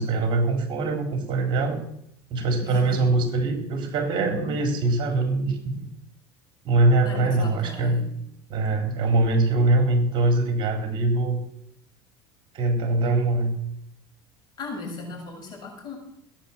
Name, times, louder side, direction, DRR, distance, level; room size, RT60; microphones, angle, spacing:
voice 1, 0.0-1.8 2.3-5.9 6.6-8.0 8.5-11.4 12.5-13.5, right 2 dB, 45° right, 4 dB, 3.8 m, -23 dB
voice 2, 2.6-3.2 7.0-8.1 14.6-16.0, left 3 dB, 40° left, 2 dB, 7.5 m, -37 dB
18.0 x 9.8 x 7.2 m, 0.74 s
supercardioid pair, 120°, 11 cm